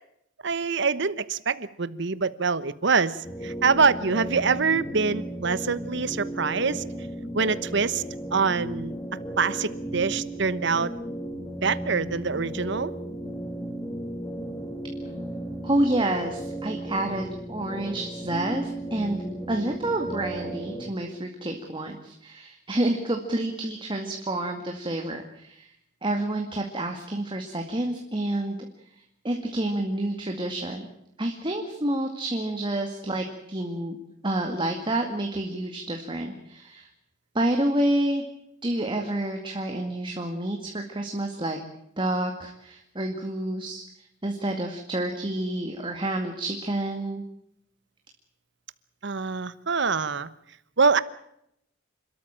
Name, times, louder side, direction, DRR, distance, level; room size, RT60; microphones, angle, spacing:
voice 1, 0.4-6.8 7.3-8.0 8.3-8.9 9.4-10.9 11.6-12.9 49.0-50.3 50.8-51.0, right 5 dB, 65° right, 16 dB, 1.1 m, -25 dB
sound 1, 3.2-20.9, right 1 dB, 15° left, 2.7 m, -35 dB
voice 2, 15.6-19.2 19.5-25.7 26.0-28.6 29.2-30.8 31.2-34.0 34.2-36.9 37.3-38.2 38.6-41.6 42.0-43.8 44.2-47.2, right 1 dB, 25° right, 3 dB, 2.1 m, -28 dB
28.5 x 13.5 x 8.9 m, 0.76 s
head